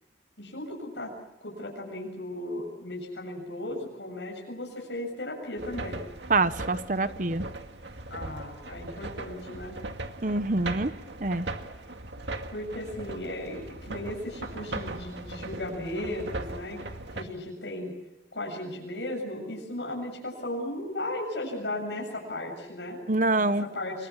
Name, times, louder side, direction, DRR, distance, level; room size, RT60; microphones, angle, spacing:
voice 1, 0.4-1.1 1.4-6.0 8.1-9.7 12.5-16.8 17.1-17.9 18.3-23.0 23.7-24.1, left 1 dB, 85° left, 0 dB, 7.6 m, -36 dB
sound 1, 5.6-17.2, right 2 dB, 90° right, 2.1 m, -39 dB
voice 2, 6.3-7.5 10.2-10.9 11.2-11.5 23.1-23.7, right 2 dB, 45° right, 12 dB, 1.0 m, -25 dB
29.0 x 23.0 x 7.3 m, 1.0 s
head